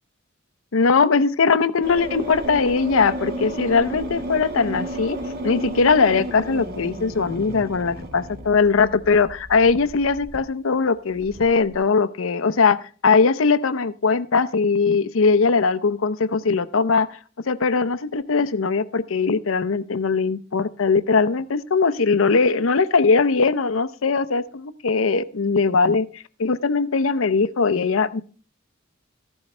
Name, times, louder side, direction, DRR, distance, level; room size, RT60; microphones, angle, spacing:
voice 1, 0.7-17.2 17.5-28.2, left 4 dB, 75° left, 13 dB, 0.6 m, -20 dB
sound 1, 1.8-10.4 11.2-11.8, right 1 dB, 50° right, 1.6 m, -33 dB
13.5 x 11.5 x 3.2 m, 0.40 s
head